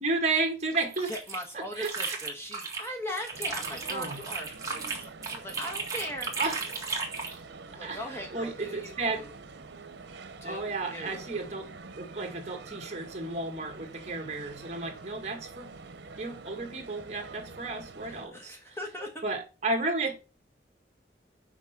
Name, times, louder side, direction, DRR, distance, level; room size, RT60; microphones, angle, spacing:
voice 1, 0.0-1.1 1.5-2.2 3.9-4.2 6.4-6.6 7.8-9.2 10.4-11.7 12.0-15.7 16.2-18.8 19.2-20.2, right 3 dB, 40° right, 1.9 m, -33 dB
sound 1, 0.7-2.9 3.2-7.4, right 4 dB, 20° right, 1.8 m, -35 dB
voice 2, 1.1-6.4 7.7-9.3 10.4-11.2 18.0-19.2, left 1 dB, 15° left, 1.3 m, -40 dB
sound 2, 3.3-18.3, right 4 dB, 80° right, 0.8 m, -46 dB
6.1 x 5.5 x 5.9 m
head